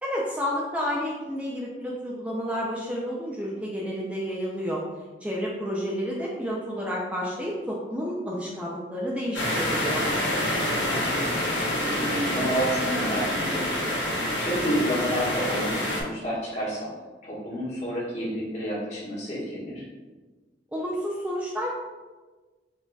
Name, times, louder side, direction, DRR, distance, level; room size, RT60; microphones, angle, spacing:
voice 1, 0.0-4.8 5.2-10.0 20.7-21.7, equal, 5° right, -4 dB, 0.4 m, -30 dB
sound 1, 9.3-16.0, left 1 dB, 75° left, 0.9 m, -27 dB
voice 2, 10.8-11.3 11.7-13.7 14.0-16.9 17.2-19.8, equal, 40° left, -8 dB, 1.4 m, -30 dB
5.0 x 2.7 x 2.2 m, 1.3 s
head